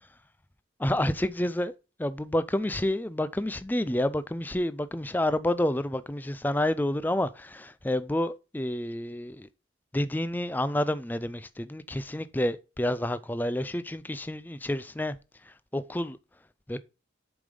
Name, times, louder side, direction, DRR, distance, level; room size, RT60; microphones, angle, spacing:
voice 1, 0.8-1.7 2.0-9.5 9.9-15.2 15.7-16.2 16.7-16.8, left 1 dB, 10° left, 0.4 m, -29 dB
7.0 x 5.1 x 5.2 m
head